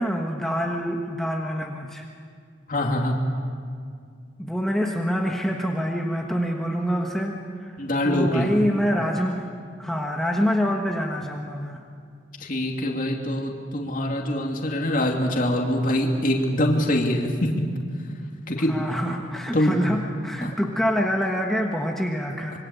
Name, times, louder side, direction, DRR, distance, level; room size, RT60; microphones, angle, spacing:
voice 1, 0.0-2.1 4.4-9.5 9.8-11.8 18.7-22.6, equal, ahead, 0 dB, 1.4 m, -26 dB
voice 2, 2.7-3.2 7.8-8.5 12.4-17.6 18.5-18.9 19.5-19.8 20.4-20.5 22.5-22.6, left 1 dB, 45° left, 1 dB, 2.8 m, -24 dB
26.0 x 24.0 x 8.4 m, 2.2 s
head